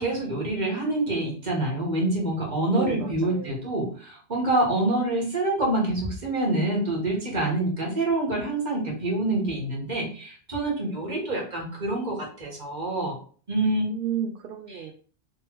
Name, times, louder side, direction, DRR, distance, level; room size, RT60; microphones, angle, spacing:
voice 1, 0.0-13.1 13.5-13.9 14.7-14.9, right 2 dB, 40° right, -2 dB, 1.6 m, -26 dB
voice 2, 2.7-3.7 13.8-14.9, right 8 dB, 60° right, 3 dB, 0.7 m, -32 dB
3.3 x 3.1 x 4.5 m, 0.43 s
omnidirectional pair, 1.2 m